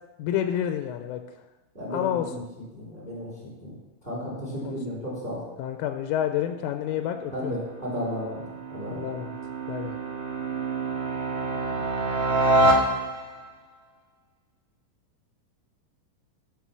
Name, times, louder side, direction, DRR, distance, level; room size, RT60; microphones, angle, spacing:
voice 1, 0.2-1.2 1.9-2.3 4.6-4.7 5.6-7.5 8.9-9.4 9.7-10.0, left 10 dB, 85° left, 7 dB, 3.1 m, -29 dB
voice 2, 1.7-2.4 2.7-3.7 4.0-5.4 7.3-8.4 8.7-9.0, equal, 15° right, -5 dB, 2.6 m, -34 dB
sound 1, 7.0-13.5, right 1 dB, 85° right, 1.4 m, -27 dB
11.0 x 6.0 x 5.8 m, 1.0 s
omnidirectional pair, 5.7 m